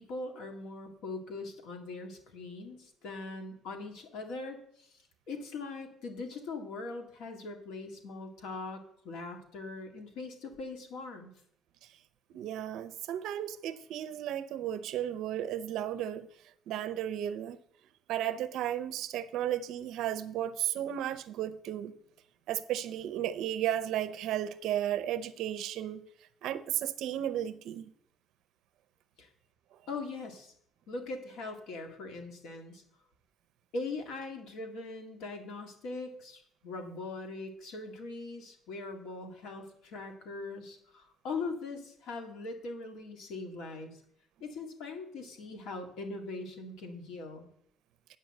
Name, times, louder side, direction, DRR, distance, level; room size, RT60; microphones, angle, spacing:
voice 1, 0.0-5.0 5.3-11.3 29.2-29.3 29.9-30.5 30.9-32.8 33.7-44.0 44.4-47.5, left 3 dB, 75° left, 2.0 m, -41 dB
voice 2, 12.3-16.3 16.7-17.6 18.1-21.9 22.5-26.0 26.4-27.8, right 11 dB, 65° right, 0.6 m, -34 dB
9.3 x 5.4 x 7.8 m
cardioid pair, 165°, 0 cm